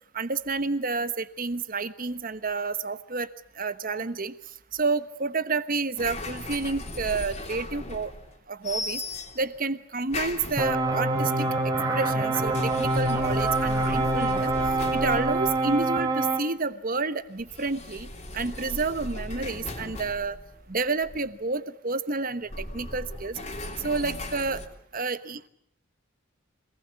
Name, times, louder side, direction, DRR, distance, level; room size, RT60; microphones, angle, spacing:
voice 1, 0.1-3.3 3.6-4.3 4.7-8.1 8.5-9.0 9.3-11.5 11.9-14.5 14.9-18.1 18.3-20.4 20.7-23.4 23.8-24.6 24.9-25.5, right 4 dB, 40° right, 12 dB, 1.2 m, -29 dB
sound 1, 6.0-8.4 8.6-9.6 10.1-11.0 12.3-15.9 17.4-21.4 22.4-24.7, left 2 dB, 30° left, 3.2 m, -37 dB
sound 2, 10.6-16.4, right 2 dB, 15° right, 3.4 m, -25 dB
26.0 x 19.5 x 8.5 m, 0.69 s
head